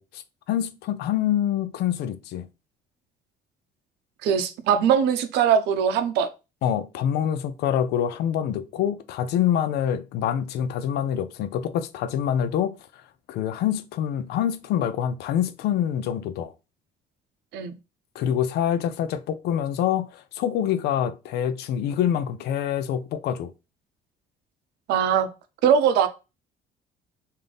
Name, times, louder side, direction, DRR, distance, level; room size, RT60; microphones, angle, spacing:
voice 1, 0.0-2.5 6.6-12.7 13.3-16.5 18.1-23.5, left 9 dB, 75° left, 0.5 m, -26 dB
voice 2, 4.2-6.3 17.5-17.8 24.9-25.3 25.6-26.1, right 8 dB, 85° right, 0.7 m, -21 dB
3.4 x 2.7 x 3.8 m
cardioid pair, 110°, 17 cm